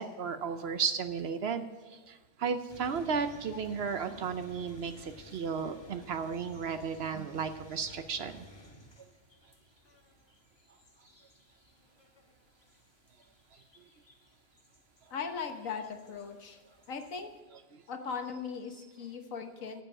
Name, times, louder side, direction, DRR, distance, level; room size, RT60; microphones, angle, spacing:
voice 1, 0.0-8.5 17.7-17.8, right 6 dB, 60° right, 10 dB, 0.8 m, -34 dB
sound 1, 2.7-17.4, equal, 20° left, 1.2 m, -56 dB
voice 2, 15.1-16.6 16.9-17.3 17.9-19.8, left 6 dB, 80° left, 6 dB, 1.6 m, -38 dB
10.0 x 7.4 x 8.6 m, 1.2 s
omnidirectional pair, 1.4 m